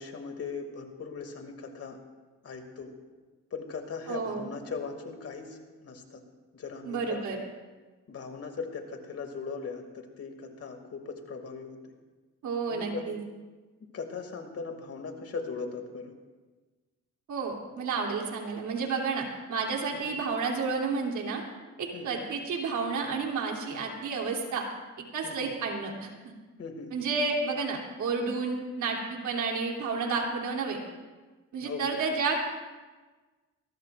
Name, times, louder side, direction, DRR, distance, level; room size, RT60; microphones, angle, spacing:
voice 1, 0.0-2.0 2.4-2.9 3.5-6.2 6.5-7.3 8.1-11.9 12.7-13.1 13.9-16.1 19.9-20.1 21.9-22.3 25.2-25.5 26.6-26.9 31.6-32.0, left 5 dB, 50° left, 4 dB, 2.3 m, -39 dB
voice 2, 4.1-4.5 6.8-7.4 12.4-13.2 17.3-21.4 21.8-24.6 25.1-26.3 26.9-30.8 31.5-32.4, right 4 dB, 75° right, 0 dB, 3.1 m, -31 dB
22.5 x 18.5 x 2.5 m, 1.3 s
cardioid pair, 90°, 30 cm